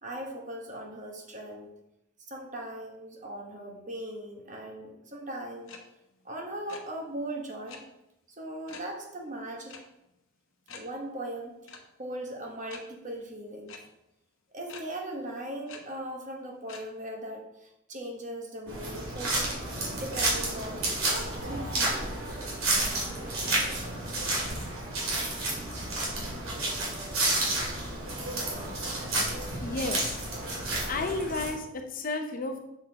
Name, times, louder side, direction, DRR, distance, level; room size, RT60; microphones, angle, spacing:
voice 1, 0.0-1.7 2.3-5.8 6.2-7.8 8.4-9.8 10.7-11.6 12.0-13.7 14.5-19.5 19.9-22.1, right 1 dB, 35° right, 0 dB, 1.2 m, -39 dB
sound 1, 5.7-5.8 6.1-6.3 6.5-6.8 7.7-7.8 8.7-8.9 9.7-9.8 10.2-10.3 10.7-10.8 11.7-11.8 12.7-12.8 13.7-13.8 14.7-14.8 15.7-15.8 16.7-16.8, left 5 dB, 75° left, 0.9 m, -45 dB
sound 2, 18.7-31.5, right 2 dB, 80° right, 2.5 m, -31 dB
voice 2, 29.6-30.2 30.9-32.6, left 3 dB, 40° left, 5 dB, 0.6 m, -32 dB
6.9 x 6.5 x 2.9 m, 0.87 s
head